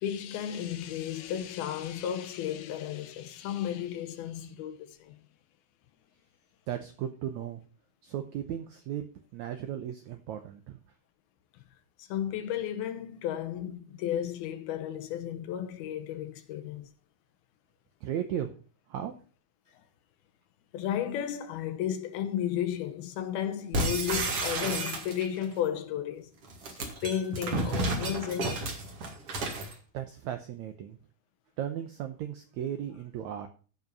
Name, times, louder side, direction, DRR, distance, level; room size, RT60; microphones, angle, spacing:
voice 1, 0.0-5.2 12.0-16.9 20.7-26.3 26.7-28.7, left 10 dB, 80° left, 2.9 m, -33 dB
voice 2, 6.7-7.6 8.0-9.0 9.3-10.8 18.0-18.5 18.9-19.1 29.9-31.0 31.6-33.5, right 10 dB, 85° right, 1.6 m, -36 dB
sound 1, 23.7-25.4 26.4-29.7, right 2 dB, 45° right, 2.5 m, -31 dB
14.5 x 5.6 x 5.3 m
omnidirectional pair, 4.4 m